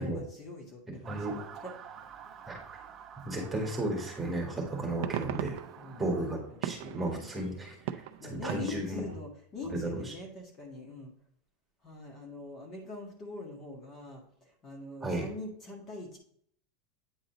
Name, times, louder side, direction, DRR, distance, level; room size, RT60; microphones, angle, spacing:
voice 1, 0.0-2.0 2.7-2.9 5.8-7.6 8.2-11.1 11.8-16.2, left 2 dB, 30° left, 0 dB, 1.7 m, -44 dB
Motor vehicle (road) / Siren, 1.0-6.4, right 8 dB, 25° right, 0.8 m, -48 dB
voice 2, 1.1-1.4 2.5-2.6 3.3-5.6 6.0-8.0 8.3-9.0 9.8-9.9 15.0-15.3, right 1 dB, 10° right, 0 dB, 1.9 m, -34 dB
sound 1, 4.1-4.2 4.6-9.2, right 11 dB, 65° right, 0.5 m, -40 dB
9.0 x 4.0 x 4.0 m, 0.63 s
supercardioid pair, 155°, 0 cm